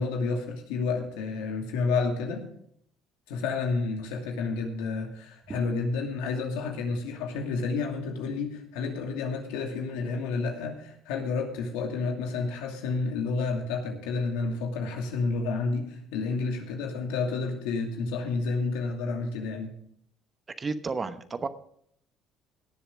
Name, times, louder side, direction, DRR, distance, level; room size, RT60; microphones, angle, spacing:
voice 1, 0.0-2.4 3.3-19.7, left 4 dB, 85° left, 2 dB, 2.5 m, -30 dB
voice 2, 20.6-21.5, right 4 dB, 30° right, 11 dB, 1.0 m, -32 dB
18.0 x 7.2 x 5.1 m, 0.69 s
supercardioid pair, 85°, 0 cm